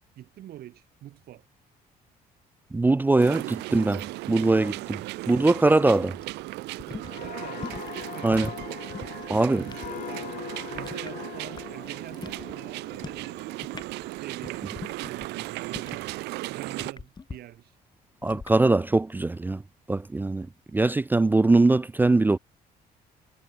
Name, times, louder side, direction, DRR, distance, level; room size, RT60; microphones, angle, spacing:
voice 1, 0.2-1.4 3.4-3.6 5.0-5.5 7.2-9.0 9.5-10.3 10.7-13.4 14.1-14.8 15.1-16.1 16.5-17.8, right 13 dB, 65° right, 3.0 m, -45 dB
voice 2, 2.7-3.4 3.7-5.0 5.3-6.2 8.2-8.5 9.3-9.6 18.2-19.6 19.9-20.5 20.7-22.4, right 2 dB, 10° right, 0.4 m, -21 dB
sound 1, 3.2-16.9, right 20 dB, 90° right, 1.6 m, -36 dB
sound 2, 6.1-9.9 10.2-11.9 12.1-12.5 12.9-13.3 13.5-16.2 16.7-17.4 18.2-18.6, left 4 dB, 25° left, 2.6 m, -42 dB
sound 3, 7.0-14.5 14.9-15.1, left 11 dB, 50° left, 0.7 m, -41 dB
cardioid pair, 110°, 17 cm